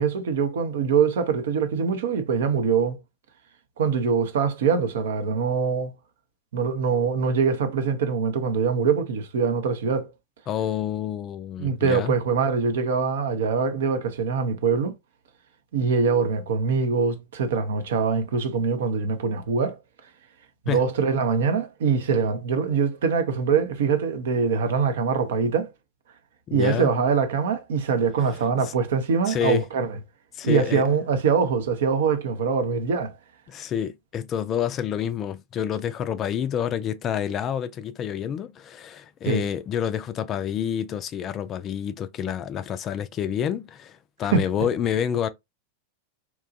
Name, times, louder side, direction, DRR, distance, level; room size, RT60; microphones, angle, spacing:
voice 1, 0.0-3.0 3.8-5.9 6.5-10.1 11.6-14.9 15.7-19.8 20.7-25.7 26.5-30.0 30.4-33.1 39.2-39.4 44.3-44.7, right 5 dB, 60° right, 0.5 m, -23 dB
voice 2, 10.5-12.2 20.7-20.9 26.5-26.9 29.3-29.6 30.4-30.8 33.5-45.3, left 9 dB, 30° left, 0.3 m, -28 dB
2.9 x 2.2 x 2.5 m
figure-of-eight pair, 90°, 0 cm